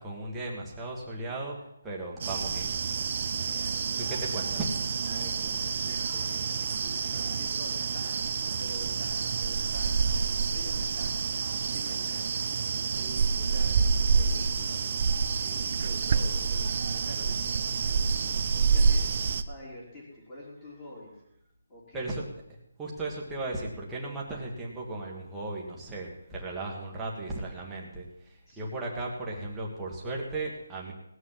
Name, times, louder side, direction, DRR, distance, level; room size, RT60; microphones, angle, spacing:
voice 1, 0.0-1.6 1.8-2.7 4.0-4.7 21.9-22.2 22.8-30.9, right 2 dB, 5° right, -4 dB, 1.7 m, -36 dB
sound 1, 2.2-19.4, right 5 dB, 35° right, 0.6 m, -28 dB
voice 2, 3.4-4.3 4.8-11.2 11.6-12.3 12.9-15.1 15.4-19.1 19.5-21.1 21.7-22.2 28.5-28.6, left 1 dB, 15° left, -6 dB, 3.8 m, -47 dB
18.5 x 6.4 x 7.5 m, 0.81 s
hypercardioid pair, 175°, 0 cm